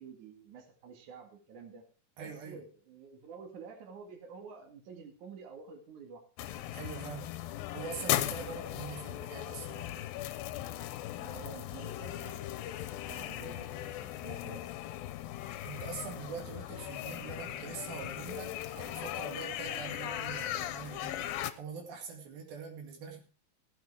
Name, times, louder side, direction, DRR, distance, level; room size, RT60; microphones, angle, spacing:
voice 1, 0.0-1.8 2.2-6.2 11.2-12.5 13.0-14.7, right 5 dB, 60° right, 3 dB, 3.4 m, -49 dB
voice 2, 2.2-2.6 6.7-7.3 7.7-10.1 13.0-13.3 15.6-23.2, right 5 dB, 80° right, 3 dB, 4.1 m, -44 dB
sound 1, 6.4-21.5, left 13 dB, 85° left, 2.6 m, -38 dB
15.5 x 8.5 x 4.8 m, 0.37 s
omnidirectional pair, 4.1 m